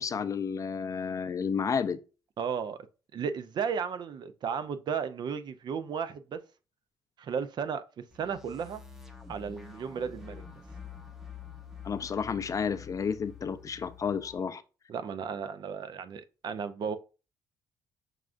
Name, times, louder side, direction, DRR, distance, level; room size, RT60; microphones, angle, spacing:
voice 1, 0.0-2.0 11.8-14.6, left 6 dB, 35° left, 0.4 m, -31 dB
voice 2, 2.4-2.8 3.1-6.4 7.2-7.8 8.2-8.8 9.3-10.4 14.9-17.0, right 6 dB, 50° right, 0.4 m, -34 dB
sound 1, 8.1-14.3, left 6 dB, 5° right, 0.7 m, -47 dB
6.2 x 2.4 x 2.5 m
cardioid pair, 80°, 9 cm